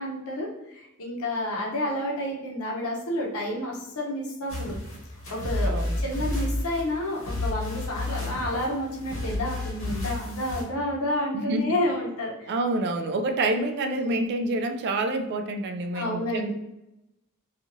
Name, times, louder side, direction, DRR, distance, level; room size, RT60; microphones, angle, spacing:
voice 1, 0.0-4.8 5.3-12.5 13.9-14.2 15.9-16.5, left 1 dB, 85° left, -2 dB, 0.8 m, -30 dB
sound 1, 4.5-10.6, left 1 dB, 65° left, 1.0 m, -31 dB
voice 2, 5.6-6.0 11.3-11.7 12.5-16.5, right 2 dB, 50° right, 6 dB, 0.3 m, -27 dB
2.9 x 2.4 x 2.5 m, 0.88 s
head